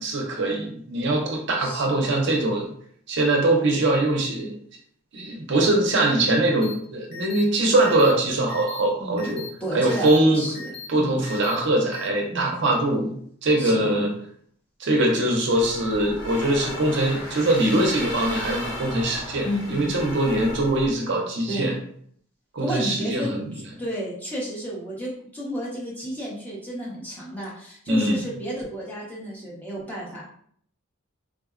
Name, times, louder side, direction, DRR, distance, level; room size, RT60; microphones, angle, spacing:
voice 1, 0.0-2.7 3.1-4.6 5.1-9.4 9.7-10.4 10.9-13.1 13.4-14.1 14.8-21.7 22.5-23.4 27.9-28.2, right 1 dB, 50° right, 1 dB, 0.5 m, -22 dB
voice 2, 1.6-2.0 9.0-11.2 12.3-12.6 13.6-14.1 19.4-19.9 21.5-21.8 22.6-23.3 23.8-30.2, equal, 5° left, -6 dB, 0.6 m, -32 dB
sound 1, 6.6-6.7 7.1-7.4 7.8-8.1 8.5-8.8 9.2-9.5 9.9-10.2 10.5-10.9 11.2-11.6 11.9-12.1, left 5 dB, 45° left, 0.7 m, -38 dB
sound 2, 15.5-20.9, left 1 dB, 65° left, 1.1 m, -35 dB
3.5 x 2.0 x 2.4 m, 0.63 s
head